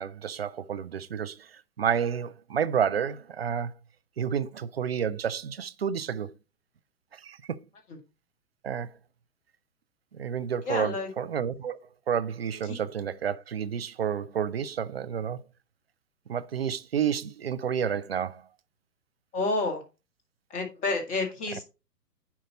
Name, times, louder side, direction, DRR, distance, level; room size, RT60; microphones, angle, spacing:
voice 1, 0.0-3.7 4.2-6.3 7.1-7.6 8.6-8.9 10.1-11.8 12.1-15.4 16.3-18.5, right 8 dB, 40° right, 0.5 m, -30 dB
voice 2, 10.6-11.1 12.7-12.8 19.3-19.8 20.5-21.6, left 3 dB, 15° left, 1.7 m, -29 dB
10.5 x 4.5 x 4.0 m
figure-of-eight pair, 120°, 48 cm